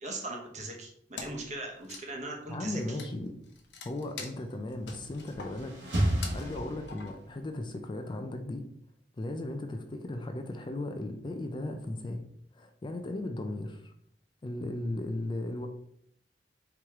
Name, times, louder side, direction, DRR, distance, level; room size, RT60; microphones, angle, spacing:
voice 1, 0.0-3.0, right 2 dB, 40° right, 1 dB, 1.0 m, -39 dB
Wood, 1.1-1.5 1.8-7.4, left 4 dB, 75° left, 0.8 m, -45 dB
voice 2, 2.5-3.4 3.8-8.6 9.2-12.2 12.5-13.9 14.4-15.7, left 1 dB, 25° left, 6 dB, 0.4 m, -36 dB
sound 1, 4.9-7.3, right 1 dB, 85° right, 1.4 m, -32 dB
4.7 x 3.0 x 3.5 m, 0.70 s
head